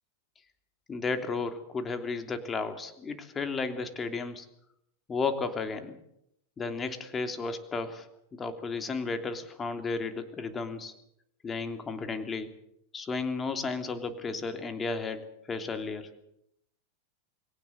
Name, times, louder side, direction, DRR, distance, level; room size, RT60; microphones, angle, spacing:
voice 1, 0.9-4.5 5.1-6.0 6.6-8.1 8.3-10.9 11.4-12.5 12.9-16.1, left 4 dB, 20° left, 8 dB, 3.2 m, -33 dB
22.0 x 18.5 x 8.0 m, 0.75 s
hypercardioid pair, 100°, 0 cm